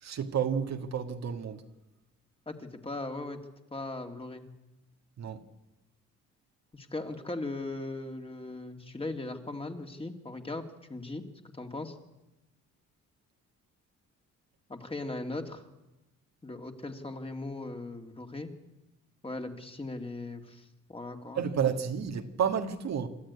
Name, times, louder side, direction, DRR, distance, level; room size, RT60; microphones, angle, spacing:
voice 1, 0.0-1.6 5.2-5.4 21.3-23.1, right 7 dB, 60° right, 1.8 m, -30 dB
voice 2, 2.5-3.4 3.7-4.4 6.7-11.2 11.5-12.0 14.7-15.6 16.4-18.5 19.2-20.6 20.9-21.4, left 2 dB, 20° left, 2.4 m, -38 dB
26.0 x 13.0 x 9.7 m
cardioid pair, 90°, 30 cm